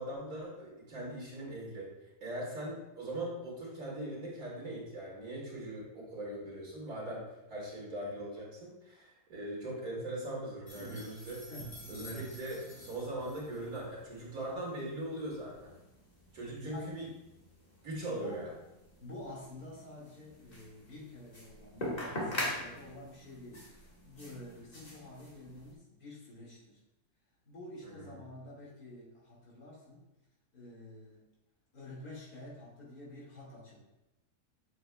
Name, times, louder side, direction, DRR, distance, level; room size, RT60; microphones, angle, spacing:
voice 1, 0.0-1.9 2.2-7.2 7.5-11.4 11.9-15.7 16.3-17.1 17.8-18.5 27.8-28.2, right 1 dB, 65° right, -4 dB, 2.6 m, -40 dB
sound 1, 10.7-25.7, left 1 dB, 25° left, 1.6 m, -44 dB
voice 2, 16.6-17.1 18.0-18.4 19.0-26.8 27.4-30.1 30.5-31.2 31.7-33.8, left 1 dB, 70° left, -4 dB, 2.6 m, -49 dB
7.7 x 7.1 x 2.2 m, 0.96 s
omnidirectional pair, 1.6 m